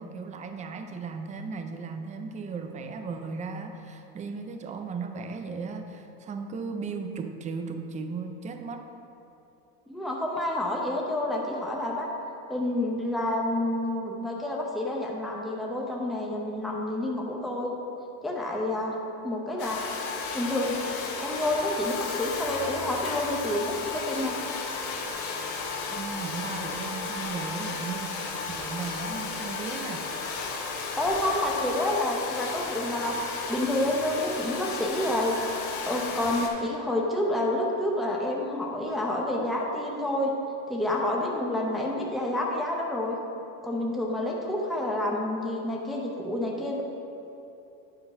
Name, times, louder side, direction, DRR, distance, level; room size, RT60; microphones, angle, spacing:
voice 1, 0.0-8.8 25.9-28.2 28.5-30.1, right 4 dB, 20° right, 6 dB, 0.4 m, -36 dB
voice 2, 9.9-12.1 12.5-17.7 18.2-19.0 19.2-19.8 20.3-20.8 21.2-24.4 31.0-33.1 33.5-35.4 35.8-40.3 40.7-43.2 43.6-46.8, left 1 dB, ahead, -2 dB, 0.8 m, -29 dB
Domestic sounds home sounds, 19.6-36.5, left 4 dB, 75° left, 1.3 m, -34 dB
9.8 x 3.8 x 5.7 m, 2.8 s
cardioid pair, 135°, 39 cm